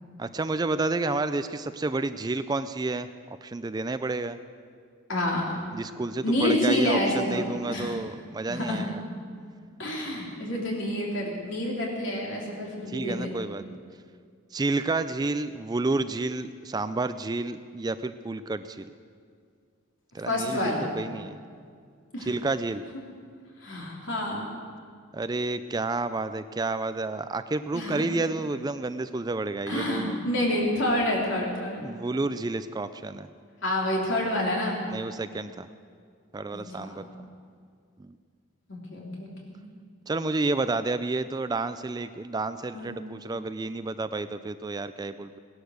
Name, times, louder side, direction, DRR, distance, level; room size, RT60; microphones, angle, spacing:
voice 1, 0.2-3.1 3.4-4.4 5.7-9.0 12.9-13.6 14.5-18.9 20.1-21.4 22.2-22.8 25.1-30.1 31.8-33.3 34.9-35.7 36.3-37.0 38.0-38.2 40.1-45.4, right 3 dB, 20° right, 12 dB, 0.4 m, -30 dB
voice 2, 5.1-5.4 6.2-7.4 7.7-8.0 8.5-8.8 9.8-13.3 20.3-20.9 22.1-22.3 23.6-24.5 27.7-28.0 29.7-31.8 33.6-34.8 36.5-37.2 38.7-39.6 42.7-42.9, left 1 dB, 65° left, -2 dB, 3.5 m, -28 dB
18.0 x 11.5 x 6.5 m, 2.1 s
head